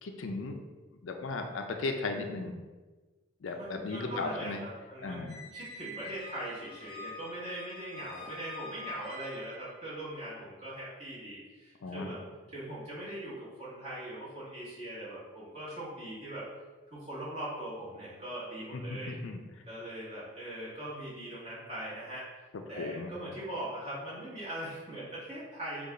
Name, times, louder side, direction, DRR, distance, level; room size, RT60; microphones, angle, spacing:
voice 1, 0.0-0.6 1.0-2.6 3.4-4.6 5.0-5.4 11.8-12.1 18.7-19.4 22.8-23.1, left 3 dB, 75° left, 4 dB, 0.5 m, -36 dB
voice 2, 3.5-5.2 5.5-12.2 12.5-16.4 16.9-19.2 19.6-22.3 22.7-25.9, right 1 dB, 30° right, -8 dB, 1.5 m, -41 dB
Squeak, 5.3-9.7, left 2 dB, 5° left, 1.2 m, -46 dB
5.3 x 2.4 x 3.8 m, 1.3 s
head